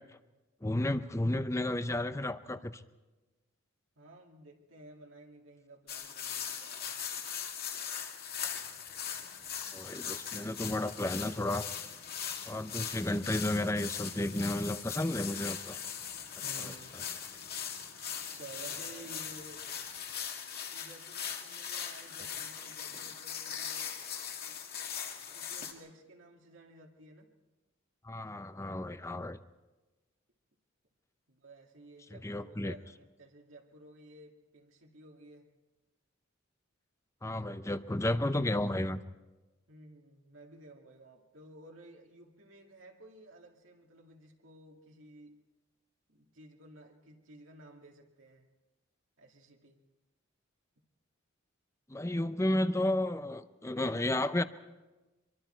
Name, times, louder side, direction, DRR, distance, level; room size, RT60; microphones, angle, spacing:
voice 1, 0.6-2.8 9.7-11.7 12.5-15.8 16.6-16.7 28.0-29.4 32.1-32.7 37.2-39.0 51.9-54.4, left 1 dB, 15° left, 11 dB, 0.7 m, -32 dB
voice 2, 4.0-7.0 16.4-16.9 18.3-19.7 20.7-24.0 24.4-24.8 25.3-27.3 31.3-35.5 37.6-38.4 39.7-45.4 46.1-48.5 49.2-49.8, right 1 dB, 80° right, 1 dB, 2.3 m, -54 dB
sound 1, 5.9-25.7, left 8 dB, 50° left, 2.2 m, -40 dB
sound 2, 8.3-20.2, left 1 dB, 85° left, 5.3 m, -62 dB
25.0 x 23.0 x 4.5 m, 1.1 s
head